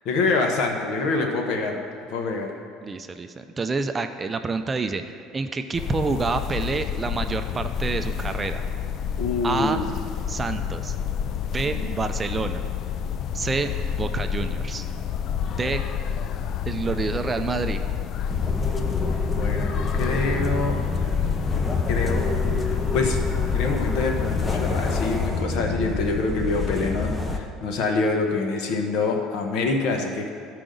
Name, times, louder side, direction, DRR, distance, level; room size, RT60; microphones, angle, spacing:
voice 1, 0.0-1.8 2.1-2.5 9.2-10.0 11.6-11.9 19.2-20.8 21.9-22.2 22.6-23.2 23.5-30.3, left 3 dB, 65° left, 2 dB, 1.2 m, -26 dB
voice 2, 2.8-8.6 9.4-9.8 10.3-11.0 11.5-12.6 13.3-13.7 14.0-14.9 15.5-15.8 16.7-17.8, right 4 dB, 20° right, 8 dB, 0.4 m, -28 dB
sound 1, 5.7-25.3, left 8 dB, 50° left, 0.3 m, -29 dB
sound 2, 18.3-27.4, left 3 dB, 20° left, 0.8 m, -27 dB
13.5 x 4.9 x 3.9 m, 2.3 s
supercardioid pair, 115°, 0 cm